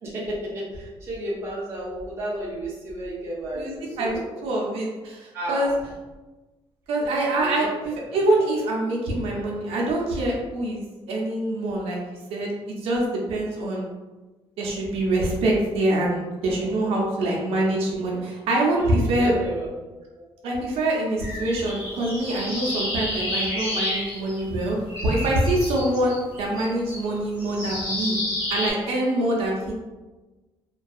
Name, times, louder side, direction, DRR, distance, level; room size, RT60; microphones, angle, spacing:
voice 1, 0.0-4.5 5.3-5.7 7.4-8.2 16.6-17.0 18.7-18.9 19.2-19.7, right 1 dB, 25° right, -5 dB, 0.5 m, -33 dB
voice 2, 3.5-5.7 6.9-12.0 12.3-13.8 14.6-19.3 20.4-24.8 25.0-28.2 28.5-29.7, right 1 dB, 70° right, -2 dB, 0.6 m, -25 dB
sound 1, 21.2-24.6 24.9-28.7, left 1 dB, 55° left, 1.3 m, -30 dB
2.6 x 2.3 x 2.3 m, 1.2 s
cardioid pair, 180°, 10 cm